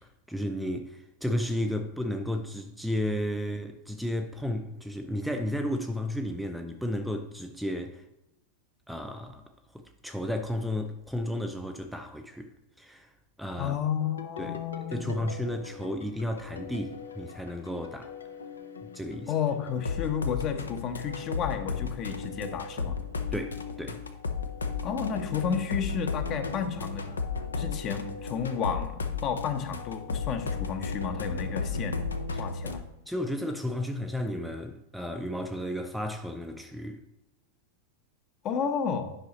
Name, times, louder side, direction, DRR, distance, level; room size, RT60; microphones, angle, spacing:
voice 1, 0.3-8.0 8.9-9.4 9.7-12.5 12.8-13.1 13.4-13.7 14.4-14.6 14.9-18.1 18.9-19.3 23.3-24.0 32.3-32.5 33.1-37.0, left 1 dB, ahead, 0.5 m, -33 dB
voice 2, 13.6-15.2 19.3-23.0 24.8-27.0 27.5-32.1 32.4-32.8 38.4-39.2, left 7 dB, 35° left, 0.9 m, -32 dB
sound 1, 14.0-32.8, left 4 dB, 75° left, 0.7 m, -35 dB
10.0 x 5.6 x 3.0 m
figure-of-eight pair, 90°, 0 cm